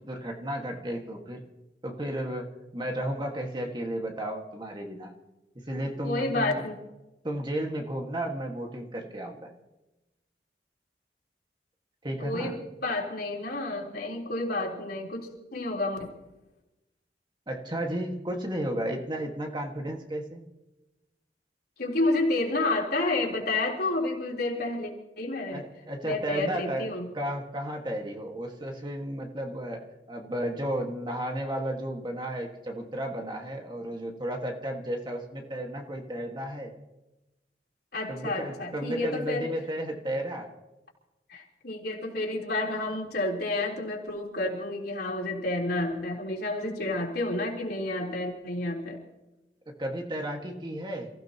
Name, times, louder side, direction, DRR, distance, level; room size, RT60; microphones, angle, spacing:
voice 1, 0.0-1.4 1.8-5.1 5.6-6.6 7.2-9.5 12.0-12.6 17.5-20.4 25.5-26.9 27.1-36.7 38.1-40.5 49.8-51.1, right 1 dB, 25° right, 2 dB, 1.8 m, -33 dB
voice 2, 6.0-6.7 12.2-12.5 12.8-16.0 21.8-25.6 26.0-27.1 37.9-39.5 41.3-49.0, left 2 dB, 60° left, -2 dB, 3.7 m, -30 dB
28.5 x 16.0 x 3.0 m, 1.0 s
head